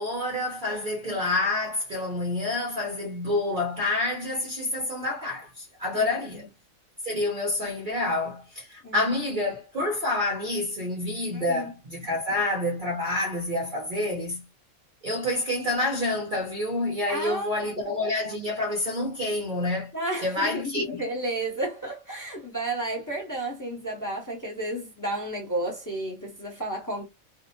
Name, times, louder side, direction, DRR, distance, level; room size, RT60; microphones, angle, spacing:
voice 1, 0.0-6.5 7.0-14.4 15.0-19.9 20.2-21.0, left 2 dB, 50° right, 0.7 m, -28 dB
voice 2, 5.9-6.5 8.8-9.0 11.3-11.7 17.1-17.7 19.9-27.0, right 1 dB, 15° left, 0.8 m, -32 dB
2.6 x 2.0 x 2.6 m
omnidirectional pair, 1.4 m